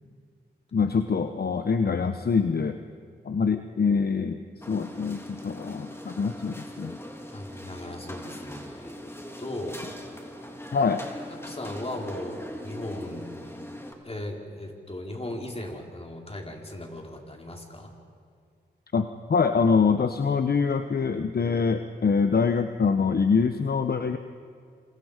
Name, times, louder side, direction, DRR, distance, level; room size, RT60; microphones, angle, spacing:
voice 1, 0.7-2.8 3.2-7.0 10.7-11.0 18.9-24.2, left 5 dB, 55° left, 8 dB, 1.0 m, -24 dB
sound 1, 4.6-13.9, left 1 dB, 15° left, 3.1 m, -41 dB
voice 2, 7.3-9.0 9.4-9.8 11.3-13.6 14.0-18.0, left 1 dB, 35° left, 1 dB, 4.4 m, -37 dB
28.5 x 27.0 x 5.1 m, 2.2 s
cardioid pair, 55°, 19 cm